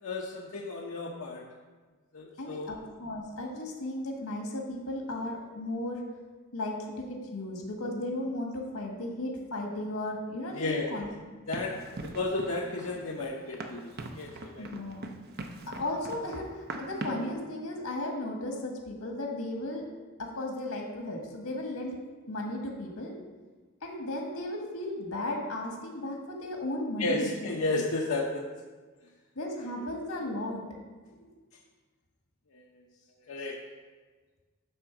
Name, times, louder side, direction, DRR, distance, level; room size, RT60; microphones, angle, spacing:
voice 1, 0.0-1.4 2.1-2.7 10.5-10.9 11.5-11.7 12.0-13.9 14.1-14.7 27.0-28.5 32.5-32.7 33.3-33.6, left 2 dB, 65° left, -2 dB, 0.8 m, -32 dB
voice 2, 2.4-6.0 6.5-11.1 14.6-15.1 15.7-19.8 20.2-22.0 22.3-23.2 23.8-27.4 29.3-30.6 31.1-31.3 33.1-33.3, left 1 dB, 90° left, 1 dB, 1.6 m, -35 dB
Run, 11.5-17.3, right 2 dB, 45° right, 0.7 m, -41 dB
10.0 x 3.7 x 5.9 m, 1.4 s
head